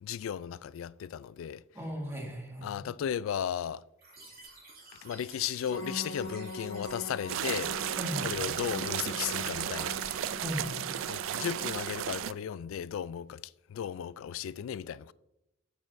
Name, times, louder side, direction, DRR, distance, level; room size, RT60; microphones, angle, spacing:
voice 1, 0.0-1.6 2.6-3.8 5.0-7.8 8.2-10.0 11.1-13.4 13.7-15.1, left 9 dB, 85° left, 0.3 m, -35 dB
voice 2, 1.7-2.9 8.0-8.3 10.4-10.9, equal, 15° right, 1.6 m, -37 dB
sound 1, 4.0-11.8, right 3 dB, 50° right, 2.4 m, -51 dB
sound 2, 5.7-12.3, left 2 dB, 60° left, 1.5 m, -43 dB
sound 3, 7.3-12.3, right 11 dB, 80° right, 0.3 m, -34 dB
8.6 x 8.4 x 2.6 m
head